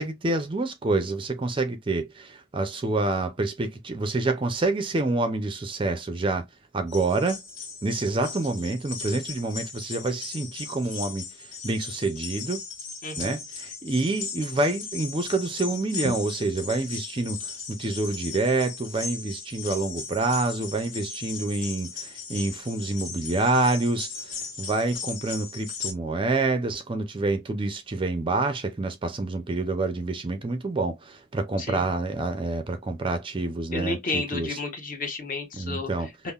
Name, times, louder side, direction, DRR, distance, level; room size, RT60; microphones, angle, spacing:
voice 1, 0.0-6.4 6.7-7.4 7.8-12.6 13.2-34.6 35.6-36.1, right 2 dB, 25° right, 0.4 m, -27 dB
sound 1, 6.9-25.9, left 5 dB, 60° left, 1.6 m, -38 dB
voice 2, 13.0-13.4 31.6-31.9 33.7-36.3, left 3 dB, 40° left, 0.9 m, -32 dB
5.3 x 2.0 x 2.3 m
head